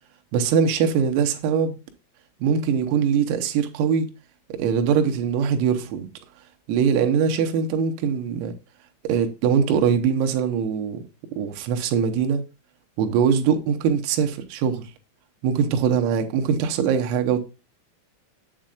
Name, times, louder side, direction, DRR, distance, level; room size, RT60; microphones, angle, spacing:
voice 1, 0.3-1.8 2.4-4.1 4.5-6.1 6.7-8.5 9.1-11.0 11.4-12.4 13.0-14.9 15.4-17.4, right 7 dB, 85° right, 3.7 m, -22 dB
8.8 x 7.5 x 2.4 m
omnidirectional pair, 5.9 m